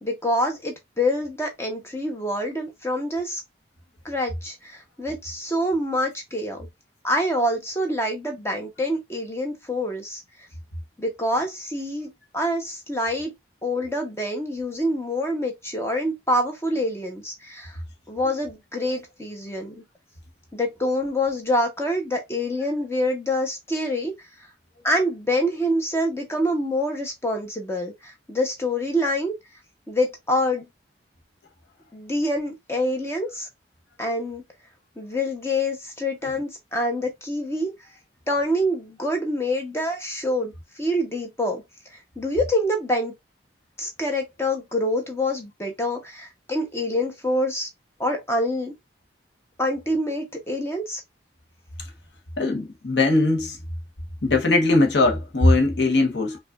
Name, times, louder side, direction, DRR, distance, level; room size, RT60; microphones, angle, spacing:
voice 1, 0.0-3.4 4.0-6.7 7.0-10.2 11.0-13.3 13.6-17.7 18.1-19.7 20.5-24.1 24.8-29.3 29.9-30.7 31.9-33.5 34.0-34.4 35.0-37.7 38.3-41.6 42.2-43.1 43.8-47.7 48.0-48.7 49.6-51.0, left 1 dB, 15° left, 0.9 m, -26 dB
voice 2, 52.4-53.6 54.2-56.4, left 2 dB, 70° left, 0.9 m, -20 dB
4.8 x 2.4 x 2.3 m
head